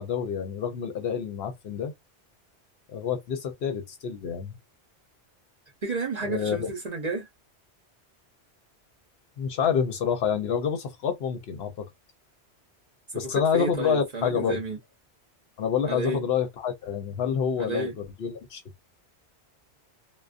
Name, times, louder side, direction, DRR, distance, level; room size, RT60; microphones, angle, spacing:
voice 1, 0.0-1.9 2.9-4.6 6.2-6.7 9.4-11.9 13.1-14.6 15.6-18.6, left 7 dB, 65° left, 0.8 m, -28 dB
voice 2, 5.8-7.3 13.1-14.8 15.8-16.2 17.6-18.0, right 2 dB, 45° right, 0.7 m, -31 dB
2.3 x 2.2 x 2.4 m
omnidirectional pair, 1.2 m